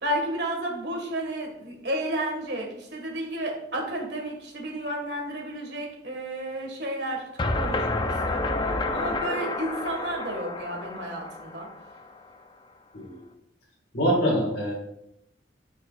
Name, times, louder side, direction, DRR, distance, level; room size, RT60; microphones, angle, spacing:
voice 1, 0.0-7.2 7.6-8.0 8.3-8.5 8.9-11.7, right 1 dB, 65° right, 0 dB, 1.8 m, -32 dB
sound 1, 7.4-12.3, left 2 dB, 25° left, 0.5 m, -29 dB
voice 2, 13.9-14.7, equal, 55° left, -6 dB, 1.9 m, -24 dB
9.2 x 5.6 x 2.5 m, 0.80 s
head